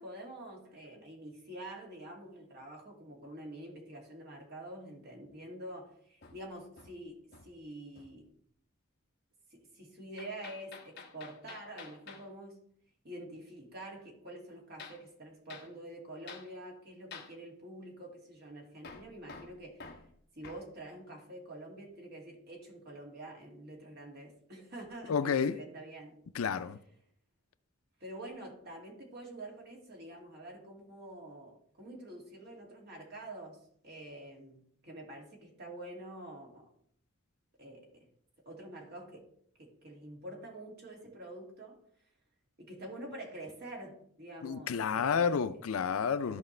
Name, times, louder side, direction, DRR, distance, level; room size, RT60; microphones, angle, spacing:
voice 1, 0.0-8.3 9.5-12.6 13.0-19.9 20.4-26.2 28.0-36.7 37.6-38.1 38.5-39.3 39.6-41.8 42.6-45.6 46.2-46.4, right 1 dB, 45° right, 2.3 m, -47 dB
Hammer, 6.2-7.7 8.0-8.3 10.2-12.3 14.8-15.0 15.5-15.7 16.3-16.5 17.1-17.4 18.8-20.7, left 4 dB, 50° left, 1.0 m, -50 dB
voice 2, 25.1-25.6 26.3-26.8 44.4-46.4, left 6 dB, 75° left, 0.4 m, -30 dB
14.0 x 5.0 x 3.2 m
head